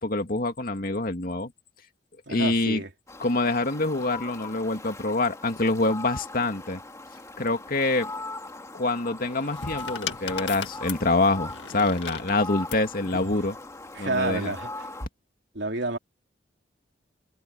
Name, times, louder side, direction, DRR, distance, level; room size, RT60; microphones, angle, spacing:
voice 1, 0.0-1.5 2.3-2.8 3.2-6.8 7.4-8.1 8.7-13.6 14.0-14.5, left 2 dB, 55° left, 2.3 m, -26 dB
voice 2, 2.3-2.9 13.1-13.2 13.9-14.9 15.5-16.0, right 2 dB, 75° right, 3.5 m, -29 dB
Fowl, 3.1-15.1, left 2 dB, 15° left, 2.0 m, -40 dB
sound 1, 9.2-12.9 13.9-14.3, left 7 dB, 90° left, 2.1 m, -37 dB
head